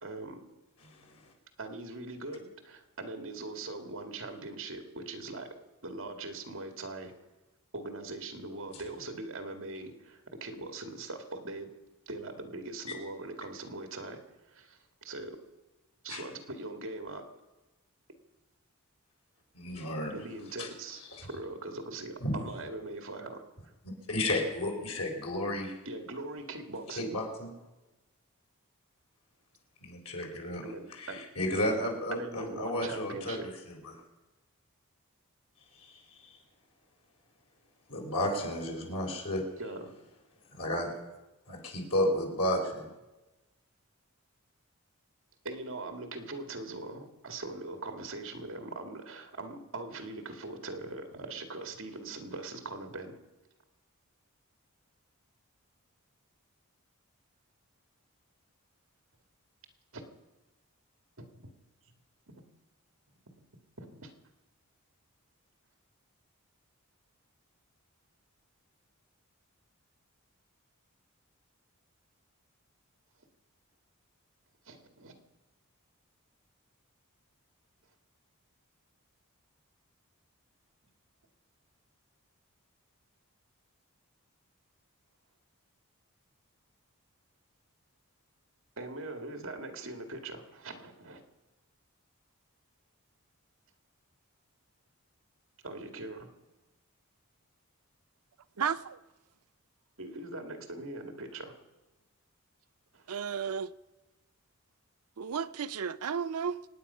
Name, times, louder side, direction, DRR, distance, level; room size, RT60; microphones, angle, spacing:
voice 1, 0.0-0.4 1.6-5.5 5.8-7.1 7.7-11.7 12.1-14.2 14.5-15.4 16.0-17.2 20.1-23.4 25.9-27.2 30.6-31.2 32.1-33.5 39.6-39.9 45.4-53.2 59.9-60.0 61.2-61.5 63.8-64.1 74.7-75.1 88.8-91.2 95.6-96.3 100.0-101.5 102.9-103.1, right 2 dB, 60° right, 1.9 m, -41 dB
voice 2, 0.9-1.3 16.1-16.2 19.5-20.1 20.6-20.7 21.1-21.3 22.2-22.4 23.8-25.8 26.9-27.5 29.8-30.6 30.9-33.4 33.7-34.0 35.7-36.4 37.9-39.4 40.5-40.9 41.5-42.9, left 1 dB, 85° left, 4.1 m, -33 dB
voice 3, 98.6-99.0 103.1-103.7 105.2-106.6, right 7 dB, 80° right, 0.5 m, -33 dB
25.5 x 9.5 x 5.5 m
head